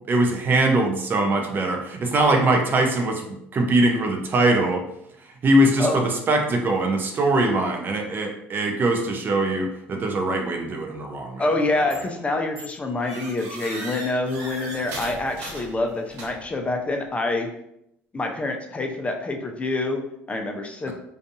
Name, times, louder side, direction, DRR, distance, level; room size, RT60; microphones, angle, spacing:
voice 1, 0.1-4.8 5.4-11.4 20.9-21.0, right 2 dB, 40° right, 3 dB, 0.6 m, -22 dB
voice 2, 11.4-17.5 18.1-20.9, left 2 dB, 25° left, 3 dB, 0.4 m, -26 dB
sound 1, 11.9-12.2 12.6-16.6, right 1 dB, 65° right, 1.0 m, -38 dB
2.5 x 2.3 x 2.6 m, 0.77 s
supercardioid pair, 80°, 5 cm